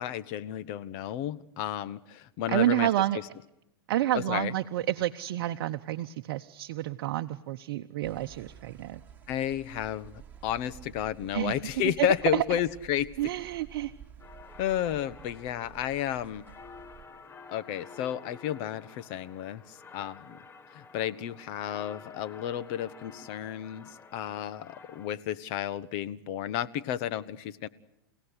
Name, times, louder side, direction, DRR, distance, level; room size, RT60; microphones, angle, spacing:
voice 1, 0.0-2.9 3.1-3.2 4.1-4.5 9.3-13.1 14.6-16.5 17.5-20.4 20.7-27.7, left 11 dB, 50° left, 15 dB, 1.3 m, -32 dB
voice 2, 2.5-3.2 3.9-9.0 11.3-11.6 12.0-12.1 12.3-12.4 13.2-13.9, right 14 dB, 60° right, 7 dB, 0.9 m, -29 dB
sound 1, 8.0-17.1, right 9 dB, 15° right, 3.8 m, -51 dB
sound 2, 14.2-25.1, left 4 dB, 15° left, 1.5 m, -51 dB
29.5 x 17.0 x 10.0 m, 0.84 s
hypercardioid pair, 115°, 12 cm